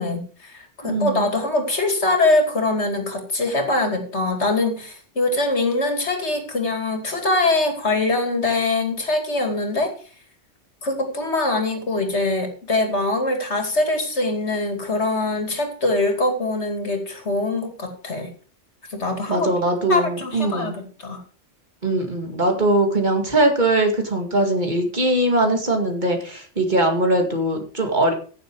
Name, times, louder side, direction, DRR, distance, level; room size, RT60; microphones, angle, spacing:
voice 1, 0.0-9.9 10.8-18.3 18.9-19.5 19.9-21.2, left 2 dB, 65° left, 5 dB, 2.8 m, -23 dB
voice 2, 0.8-1.2 19.3-20.8 21.8-28.1, right 1 dB, 40° right, 3 dB, 2.2 m, -21 dB
15.5 x 7.0 x 4.7 m, 0.40 s
omnidirectional pair, 1.2 m